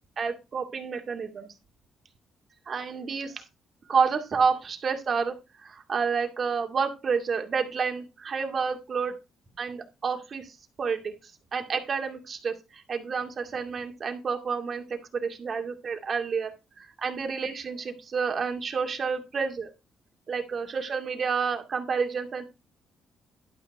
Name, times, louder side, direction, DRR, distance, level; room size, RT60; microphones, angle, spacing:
voice 1, 0.2-1.5 2.7-3.4 3.9-9.2 9.6-11.1 11.5-16.5 16.8-19.7 20.3-22.4, right 5 dB, 45° right, 4 dB, 2.3 m, -29 dB
11.5 x 6.1 x 4.7 m, 0.27 s
cardioid pair, 90°, 0 cm